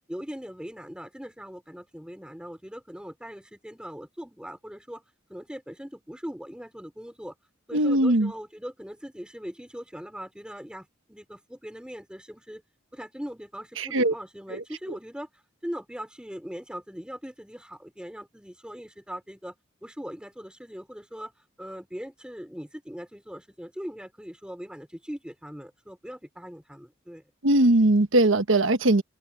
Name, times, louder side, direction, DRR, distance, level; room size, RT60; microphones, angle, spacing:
voice 1, 0.1-5.0 5.3-7.3 7.7-12.6 12.9-19.5 19.8-27.2, equal, 5° right, 4.5 m, -40 dB
voice 2, 7.7-8.3 13.8-14.1 14.5-14.6 27.4-29.0, right 1 dB, 80° right, 1.2 m, -20 dB
head